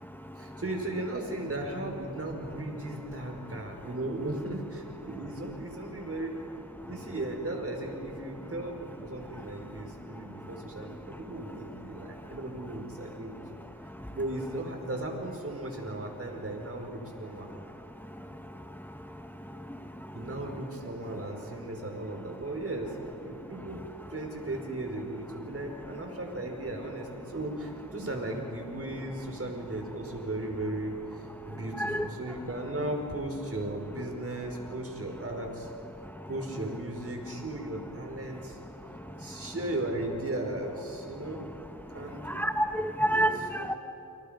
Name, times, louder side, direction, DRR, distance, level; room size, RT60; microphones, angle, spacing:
voice 1, 0.4-6.4 6.8-13.4 14.1-17.5 20.1-23.0 23.2-23.8 24.1-35.7 36.3-38.6 39.2-41.4 41.9-42.3 43.0-43.3 43.6-43.8, right 1 dB, 45° right, 2 dB, 5.3 m, -36 dB
voice 2, 42.3-43.8, right 1 dB, 5° left, 7 dB, 1.0 m, -27 dB
29.0 x 27.0 x 5.3 m, 2.9 s
cardioid pair, 60°, 32 cm